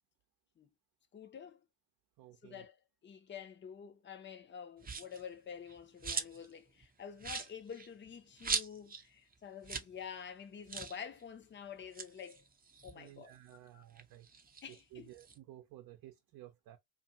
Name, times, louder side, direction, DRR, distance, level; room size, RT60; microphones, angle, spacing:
voice 1, 1.1-1.6 2.4-12.4 12.8-13.3 13.7-13.8 14.6-15.1, left 7 dB, 25° left, 0.7 m, -48 dB
voice 2, 2.2-2.6 12.9-14.3 14.9-16.8, right 14 dB, 55° right, 0.7 m, -54 dB
sound 1, 4.8-5.2 5.7-6.5 6.8-6.9 7.2-9.0 9.3-9.4 9.6-9.9 10.2-10.3 10.7-11.0 11.8-13.5 13.9-15.4, right 5 dB, 20° right, 0.7 m, -40 dB
2.6 x 2.4 x 2.8 m
hypercardioid pair, 55°, 41 cm